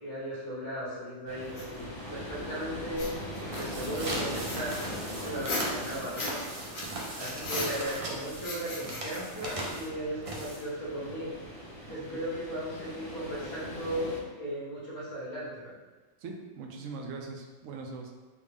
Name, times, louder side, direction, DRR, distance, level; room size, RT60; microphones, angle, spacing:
voice 1, 0.0-6.4 7.2-11.4 11.9-15.7, equal, 20° left, -9 dB, 1.0 m, -37 dB
sound 1, 1.3-14.2, equal, 45° left, 0.3 m, -42 dB
sound 2, 1.6-1.7 2.9-3.9 4.5-6.5 6.7-8.1 8.4-9.9, left 2 dB, 85° left, 1.2 m, -37 dB
sound 3, 3.5-10.9, right 1 dB, 50° right, 0.4 m, -38 dB
voice 2, 11.9-12.2 16.2-18.1, right 4 dB, 75° right, 2 dB, 0.9 m, -41 dB
3.4 x 2.4 x 3.5 m, 1.2 s
omnidirectional pair, 1.4 m